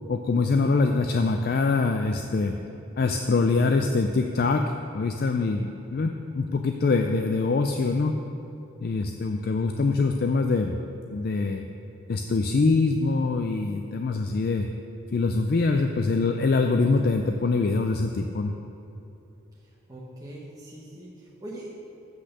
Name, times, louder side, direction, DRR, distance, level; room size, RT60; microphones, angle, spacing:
voice 1, 0.1-2.5 3.0-8.2 8.8-11.6 12.1-14.7 15.1-18.5, left 3 dB, 45° left, 5 dB, 0.4 m, -24 dB
voice 2, 19.6-21.7, right 1 dB, 15° right, -6 dB, 1.0 m, -42 dB
8.0 x 6.2 x 6.6 m, 2.9 s
head